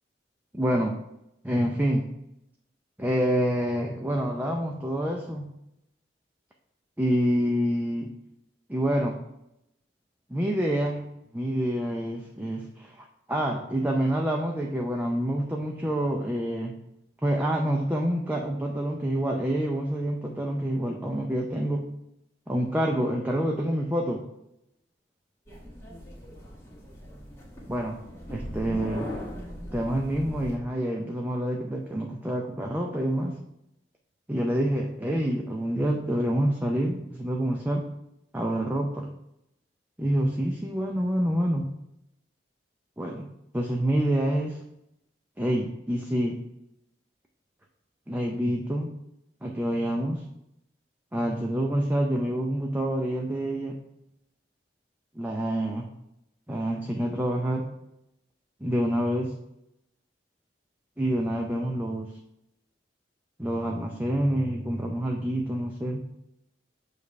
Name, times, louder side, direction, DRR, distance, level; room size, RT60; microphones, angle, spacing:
voice 1, 0.5-1.0 1.4-2.1 3.0-5.5 7.0-8.1 8.7-9.1 10.3-11.0 11.3-16.7 17.2-21.9 22.5-24.3 27.7-28.0 28.3-29.1 29.7-33.4 34.3-37.9 38.3-39.1 40.0-41.7 43.0-43.3 43.5-44.6 45.4-46.4 48.1-48.9 49.4-50.2 51.1-53.8 55.2-55.9 56.5-57.7 58.6-59.4 61.0-62.1 63.4-66.0, right 1 dB, 10° right, 1 dB, 0.5 m, -27 dB
sound 1, 25.5-30.6, equal, 15° left, 1.4 m, -39 dB
7.1 x 3.3 x 5.2 m, 0.84 s
head